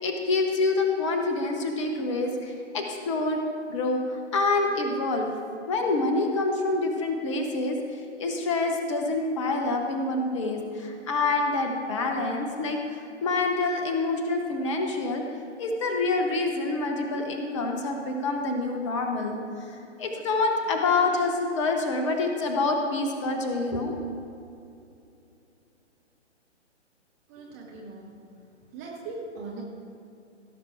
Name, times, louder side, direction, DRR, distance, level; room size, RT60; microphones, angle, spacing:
voice 1, 0.0-3.4 3.7-5.3 5.7-7.8 8.2-15.2 15.6-19.4 19.7-24.0, left 3 dB, 25° left, 3 dB, 0.9 m, -27 dB
voice 2, 27.3-28.2 28.7-29.6, right 3 dB, 15° right, -3 dB, 0.7 m, -39 dB
16.5 x 6.7 x 4.4 m, 2.6 s
figure-of-eight pair, 130°, 36 cm